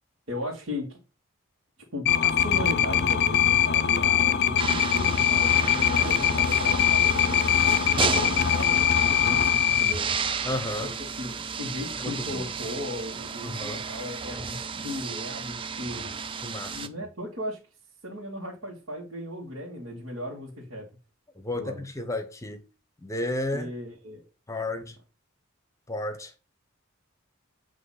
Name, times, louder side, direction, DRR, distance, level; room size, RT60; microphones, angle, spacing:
voice 1, 0.3-1.0 1.9-10.1 10.8-10.9 11.2-16.1 16.7-17.6 18.0-20.9 21.5-21.8 23.5-24.2, left 1 dB, 70° right, 2.0 m, -37 dB
sound 1, 2.1-9.9, left 9 dB, 55° left, 0.6 m, -22 dB
sound 2, 4.6-16.9, right 5 dB, 25° right, 0.5 m, -33 dB
voice 2, 10.4-10.9 12.0-12.5 13.4-13.8 16.4-16.8 21.4-22.6 23.0-23.7 24.5-25.0 25.9-26.3, left 1 dB, 15° left, 0.8 m, -32 dB
8.4 x 3.0 x 5.7 m
head